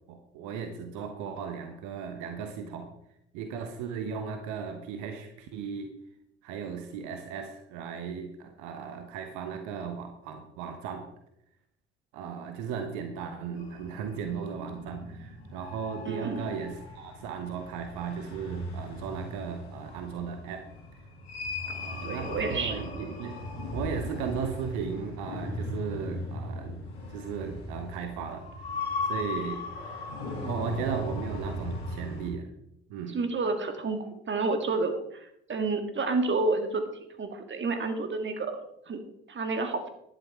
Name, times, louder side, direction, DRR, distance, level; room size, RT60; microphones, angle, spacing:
voice 1, 0.1-2.9 3.3-5.9 6.4-11.1 12.1-20.7 21.6-23.4 23.7-26.8 27.1-28.5 29.0-30.1 30.4-32.5 32.9-33.2, right 6 dB, 65° right, 6 dB, 1.2 m, -36 dB
sound 1, 13.6-32.3, left 2 dB, 80° left, 2.4 m, -38 dB
voice 2, 16.1-16.5 22.0-22.8 33.1-36.9 37.2-38.6 38.9-39.0 39.3-39.9, right 3 dB, 35° right, 6 dB, 2.0 m, -30 dB
11.0 x 10.5 x 4.5 m, 0.78 s
figure-of-eight pair, 50°, 32 cm